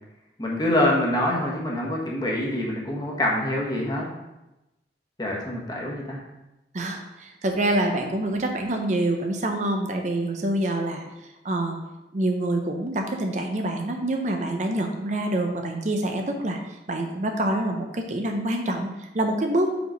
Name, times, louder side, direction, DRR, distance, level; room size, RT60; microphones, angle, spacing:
voice 1, 0.4-4.0 5.2-6.2, left 1 dB, 25° left, -2 dB, 1.3 m, -25 dB
voice 2, 6.7-11.0 11.4-11.8 12.1-16.6 16.9-19.7, right 1 dB, 40° right, 3 dB, 0.6 m, -26 dB
5.1 x 4.9 x 5.0 m, 0.97 s
head